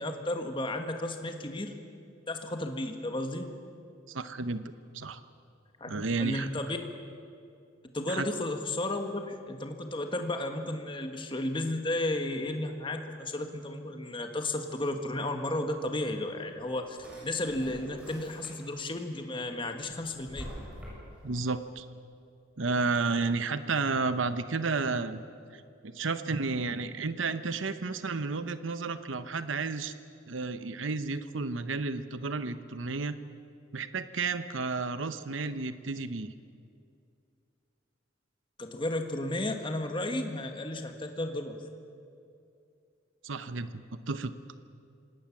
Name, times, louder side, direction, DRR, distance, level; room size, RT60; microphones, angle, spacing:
voice 1, 0.0-1.7 2.3-3.4 5.8-6.8 7.9-17.0 17.2-20.4 38.6-41.6, left 1 dB, 25° left, 5 dB, 1.6 m, -33 dB
voice 2, 4.1-4.6 4.9-5.2 5.9-6.5 8.1-8.3 21.2-21.9 22.6-25.2 25.5-29.9 30.3-33.2 33.7-36.3 43.2-44.3, right 4 dB, 85° right, 11 dB, 0.9 m, -32 dB
Drawer open or close, 16.5-18.9 19.3-21.4, equal, 5° right, 7.1 m, -47 dB
27.0 x 18.5 x 7.3 m, 2.5 s
head